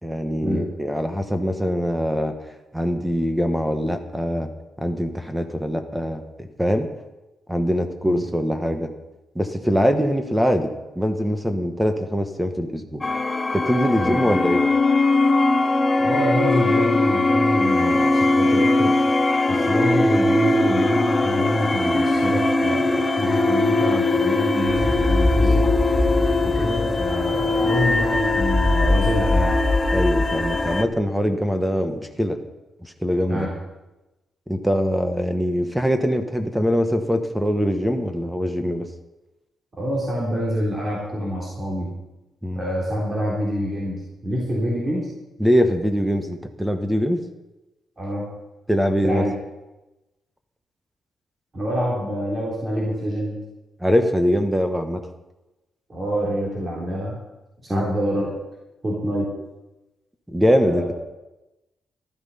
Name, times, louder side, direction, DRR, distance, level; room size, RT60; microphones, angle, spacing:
voice 1, 0.0-4.5 4.8-6.9 7.5-8.9 9.3-13.0 13.5-14.6 29.9-32.4 32.8-33.5 34.5-38.9 42.4-42.6 45.4-47.2 48.7-49.2 53.8-55.0 57.7-57.9 60.3-61.0, equal, 5° right, 7 dB, 1.1 m, -23 dB
sound 1, 13.0-30.8, left 2 dB, 20° left, 0.9 m, -20 dB
voice 2, 16.0-18.9 19.5-25.7 26.4-29.5 33.3-33.5 39.8-41.9 42.6-45.1 48.0-48.3 49.0-49.3 51.5-53.4 55.9-57.2 57.6-58.3 58.8-59.3 60.6-60.9, equal, 30° right, -4 dB, 3.5 m, -26 dB
13.0 x 12.0 x 5.6 m, 1.0 s
cardioid pair, 130°, 0 cm